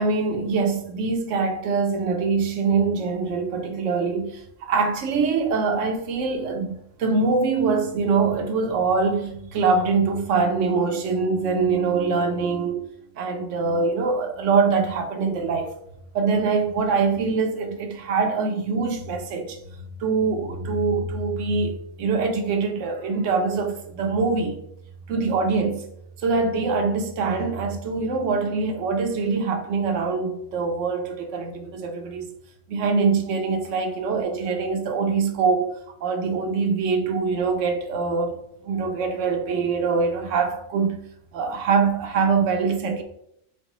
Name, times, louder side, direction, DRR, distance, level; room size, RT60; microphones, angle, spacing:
voice 1, 0.0-12.9 13.2-15.8 16.1-19.6 20.0-24.6 25.1-25.8 26.2-32.3 32.7-35.7 36.0-38.4 38.6-41.0 41.3-43.0, right 4 dB, 70° right, 1.0 m, -23 dB
6.5 x 2.2 x 3.0 m
omnidirectional pair, 1.4 m